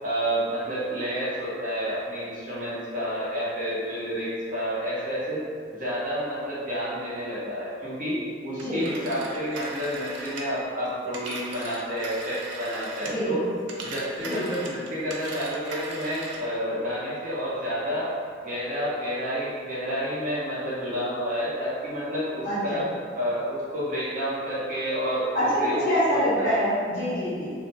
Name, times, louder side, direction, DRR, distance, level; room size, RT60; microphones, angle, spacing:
voice 1, 0.0-5.4 5.7-13.4 13.8-18.1 18.4-22.9 23.2-25.3 25.6-25.8 26.1-26.5, equal, 45° right, -8 dB, 0.8 m, -30 dB
Telephone, 8.6-13.3 13.6-16.5, right 2 dB, 90° right, 0.4 m, -39 dB
voice 2, 13.0-13.3 14.2-14.5 22.4-22.8 25.3-27.6, equal, 45° left, -13 dB, 1.0 m, -25 dB
2.8 x 2.0 x 3.1 m, 2.1 s
head